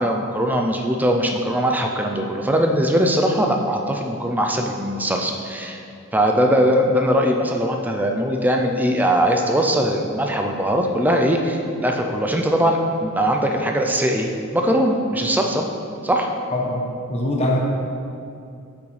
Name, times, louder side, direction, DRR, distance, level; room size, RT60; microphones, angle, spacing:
voice 1, 0.0-5.8 6.1-15.7 16.0-16.3, equal, 10° right, 2 dB, 0.4 m, -20 dB
voice 2, 16.5-16.8 17.1-17.6, left 1 dB, 30° left, -2 dB, 1.0 m, -22 dB
8.0 x 5.9 x 3.3 m, 2.5 s
head